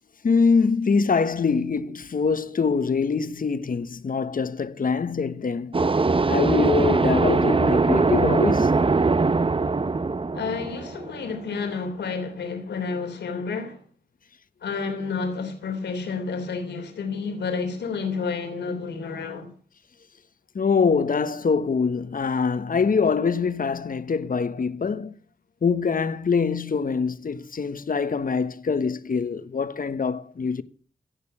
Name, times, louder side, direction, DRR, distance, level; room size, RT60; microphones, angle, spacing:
voice 1, 0.2-5.7 6.3-8.7 20.5-25.1 25.6-30.6, left 5 dB, 55° left, 1.2 m, -24 dB
sound 1, 5.7-11.4, right 3 dB, 30° right, 0.8 m, -21 dB
voice 2, 10.3-13.8 14.6-19.5, left 4 dB, 85° left, 3.2 m, -30 dB
17.0 x 6.8 x 9.8 m
supercardioid pair, 40°, 17 cm